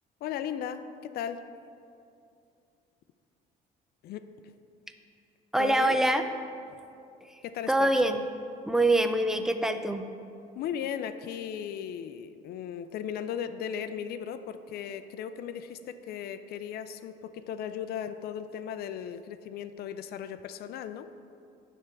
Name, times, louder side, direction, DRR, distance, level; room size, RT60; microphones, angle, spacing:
voice 1, 0.2-1.4 4.0-4.2 5.6-6.0 7.4-7.9 10.5-21.1, left 9 dB, 65° left, 11 dB, 0.4 m, -36 dB
voice 2, 5.5-6.2 7.7-8.2 8.7-10.1, right 1 dB, 5° right, 7 dB, 0.4 m, -24 dB
10.0 x 3.5 x 6.8 m, 2.5 s
cardioid pair, 110°, 17 cm